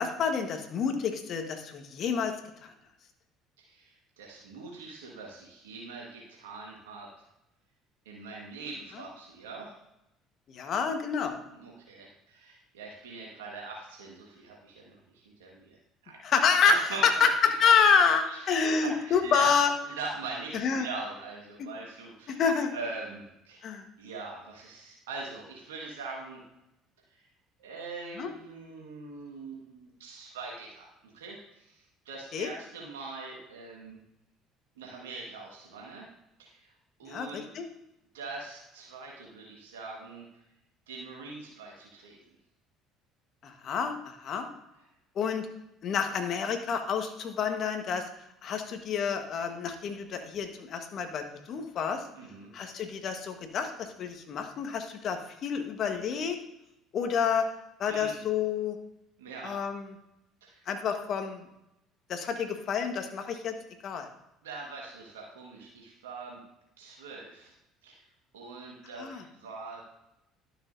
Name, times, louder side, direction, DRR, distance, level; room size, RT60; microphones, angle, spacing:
voice 1, 0.0-2.3 10.5-11.4 16.2-16.9 17.2-17.3 17.6-19.7 20.5-20.9 22.4-22.7 23.6-23.8 28.2-28.3 32.3-32.5 37.1-37.6 43.4-44.5 45.2-45.5 45.8-48.0 48.4-52.0 52.5-56.4 56.9-57.4 57.8-58.7 59.4-59.8 60.7-61.4 62.1-63.5 63.8-64.1 69.0-69.2, left 6 dB, 55° left, 6 dB, 1.3 m, -28 dB
voice 2, 3.6-7.1 8.0-9.7 11.5-16.2 16.6-17.3 17.9-19.6 19.8-22.4 22.7-23.6 24.0-26.4 27.1-27.3 27.6-34.0 34.7-36.1 36.4-36.7 37.0-37.5 38.1-40.3 40.9-42.2 44.7-44.8 52.1-52.5 57.9-58.1 59.2-59.5 60.4-60.6 64.4-66.4 66.8-67.5 67.8-68.0 68.3-69.8, right 3 dB, 90° right, -2 dB, 1.5 m, -42 dB
12.0 x 6.5 x 2.7 m, 0.86 s
hypercardioid pair, 70°, 0 cm